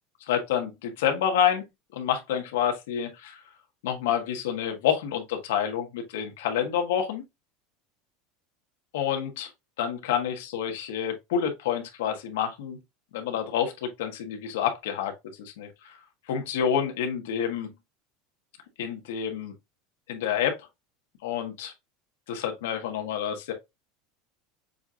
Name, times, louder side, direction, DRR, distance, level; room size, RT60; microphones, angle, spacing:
voice 1, 0.3-1.6 1.9-3.4 3.8-7.2 8.9-9.5 9.8-12.8 13.1-15.1 15.4-16.0 16.3-17.7 18.8-19.5 20.1-20.6 21.2-21.7 22.3-23.5, left 8 dB, 85° left, 1.5 m, -28 dB
6.9 x 2.5 x 2.8 m
supercardioid pair, 130°, 0 cm